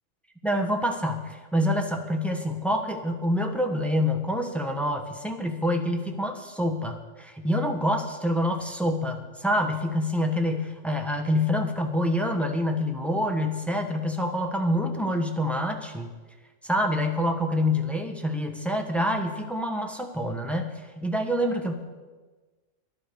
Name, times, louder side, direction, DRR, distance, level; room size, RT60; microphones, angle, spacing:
voice 1, 0.4-16.1 16.6-20.7 21.0-21.7, left 1 dB, ahead, 4 dB, 1.1 m, -26 dB
11.5 x 11.0 x 6.7 m, 1.3 s
omnidirectional pair, 1.3 m